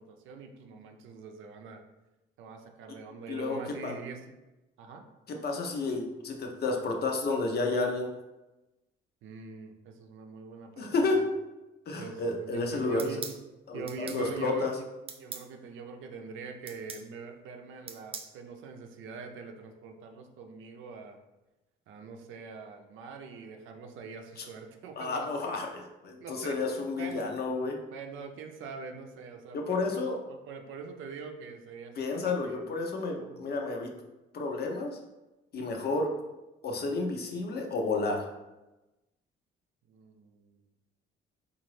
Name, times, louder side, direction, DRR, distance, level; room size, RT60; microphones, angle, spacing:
voice 1, 0.0-1.8 2.4-4.4 4.8-5.0 9.2-11.2 12.0-13.3 13.7-21.2 21.9-25.5 26.2-26.6 27.0-27.3 27.9-32.6 33.2-33.5 35.7-36.0 39.9-40.6, right 5 dB, 80° right, 4 dB, 0.5 m, -44 dB
voice 2, 3.3-4.0 5.3-8.1 10.8-11.2 11.9-13.1 13.7-14.7 24.4-24.5 25.0-27.8 29.5-30.2 32.0-33.9 34.3-35.0 35.5-36.1 36.6-38.3, left 3 dB, 55° left, 2 dB, 0.7 m, -31 dB
sound 1, 13.0-13.4 13.9-14.2 15.1-15.5 16.7-17.1 17.9-18.3, right 5 dB, 30° right, 0.4 m, -41 dB
3.9 x 2.5 x 3.1 m, 1.0 s
cardioid pair, 90°, 20 cm